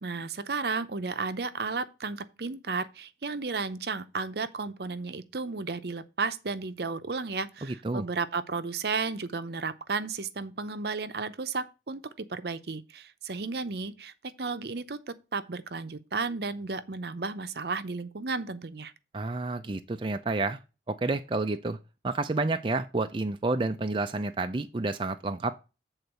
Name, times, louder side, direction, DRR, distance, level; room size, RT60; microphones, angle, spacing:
voice 1, 0.0-18.9, right 4 dB, 60° right, 0.7 m, -33 dB
voice 2, 7.6-8.0 19.1-20.6 20.9-21.8 22.0-25.5, right 3 dB, 30° right, 0.4 m, -30 dB
7.9 x 4.0 x 6.7 m
head